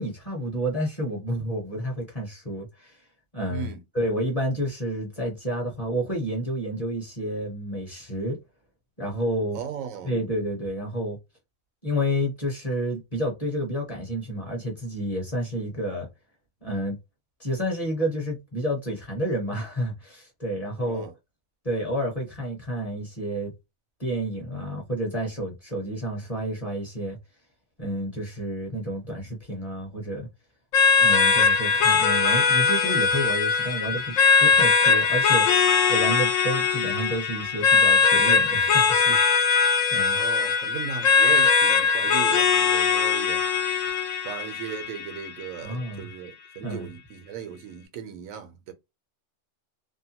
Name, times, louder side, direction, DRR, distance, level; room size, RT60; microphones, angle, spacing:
voice 1, 0.0-3.0 3.3-8.4 9.0-9.6 10.0-11.2 11.8-16.1 16.6-17.0 17.4-21.0 21.6-23.5 24.0-27.2 27.8-30.3 31.0-35.5 35.9-39.2 39.5-40.2 45.6-46.1 46.6-46.9, equal, 30° left, 0.8 m, -30 dB
voice 2, 3.5-3.8 9.5-10.1 20.8-21.1 40.1-43.5 44.2-48.7, right 8 dB, 85° right, 1.1 m, -37 dB
sound 1, 30.7-45.7, left 5 dB, 80° left, 1.0 m, -21 dB
2.8 x 2.2 x 2.8 m
omnidirectional pair, 1.4 m